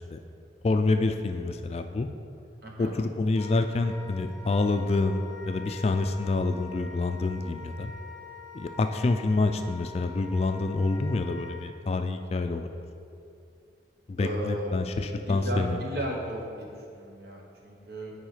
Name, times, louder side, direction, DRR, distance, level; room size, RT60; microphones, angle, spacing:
voice 1, 0.6-2.1 2.8-7.9 8.5-12.7 14.1-15.8, left 3 dB, 35° left, 7 dB, 0.3 m, -27 dB
voice 2, 2.6-3.0 14.2-14.8 15.3-18.1, right 1 dB, 55° right, 0 dB, 1.2 m, -35 dB
Wind instrument woodwind instrument, 3.3-11.7, left 3 dB, 10° left, 1.1 m, -45 dB
9.0 x 4.7 x 5.0 m, 2.5 s
head